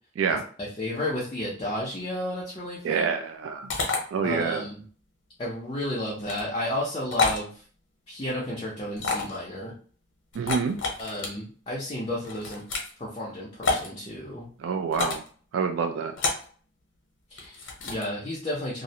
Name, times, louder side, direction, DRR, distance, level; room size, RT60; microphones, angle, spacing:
voice 1, 0.6-3.0 4.2-4.8 5.4-7.5 8.1-9.7 11.0-12.6 13.0-14.5 17.3-18.8, left 1 dB, 25° left, -6 dB, 0.5 m, -32 dB
voice 2, 2.8-3.7 4.1-4.6 10.4-10.8 14.6-15.2 15.5-16.1, right 6 dB, 85° right, 4 dB, 0.3 m, -27 dB
sound 1, 3.7-4.0 6.2-6.4 7.1-7.4 9.0-9.4 10.3-11.3 12.2-12.9 13.6-13.9 14.9-15.3 16.2-16.5 17.4-18.0, left 4 dB, 85° left, 0.7 m, -28 dB
2.4 x 2.0 x 2.7 m, 0.43 s
head